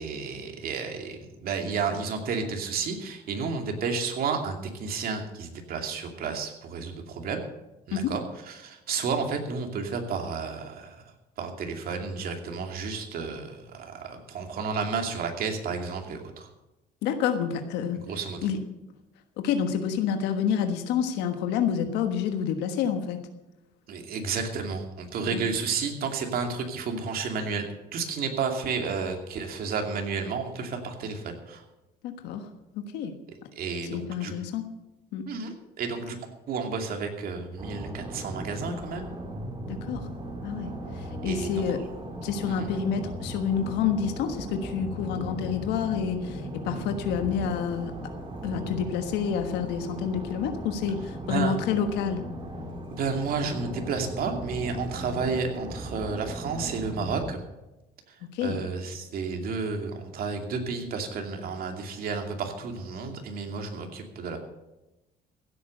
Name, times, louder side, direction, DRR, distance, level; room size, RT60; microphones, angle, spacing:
voice 1, 0.0-7.4 7.9-11.0 11.4-16.5 18.1-18.5 23.9-27.7 27.9-31.6 33.6-34.3 35.3-36.2 36.5-39.1 41.2-41.5 42.5-42.7 51.2-51.5 52.9-57.4 58.1-64.4, right 5 dB, 60° right, 4 dB, 2.6 m, -31 dB
voice 2, 17.0-18.0 18.4-18.6 19.4-23.2 25.3-25.4 32.0-32.5 32.7-33.1 33.9-34.6 35.1-35.2 39.7-40.1 40.4-41.8 42.2-47.9 48.4-52.2 58.2-58.6, left 7 dB, 90° left, 6 dB, 1.3 m, -28 dB
sound 1, 37.6-57.3, right 1 dB, 30° right, 2.9 m, -37 dB
15.5 x 8.5 x 6.7 m, 1.0 s
cardioid pair, 110°, 17 cm